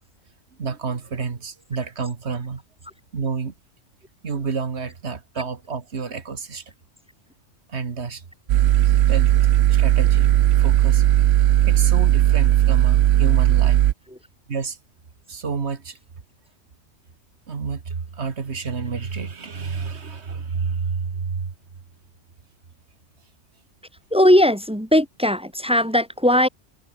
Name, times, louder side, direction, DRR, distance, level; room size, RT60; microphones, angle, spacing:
voice 1, 0.6-2.6 3.1-3.5 4.2-6.6 7.7-8.2 8.8-9.3 9.7-11.0 11.6-13.8 14.5-14.8 15.3-16.0 17.5-21.5, right 5 dB, 65° right, 1.9 m, -29 dB
sound 1, 8.5-13.9, right 13 dB, 90° right, 0.9 m, -17 dB
voice 2, 24.1-26.5, left 1 dB, 5° right, 1.3 m, -18 dB
omnidirectional pair, 1.2 m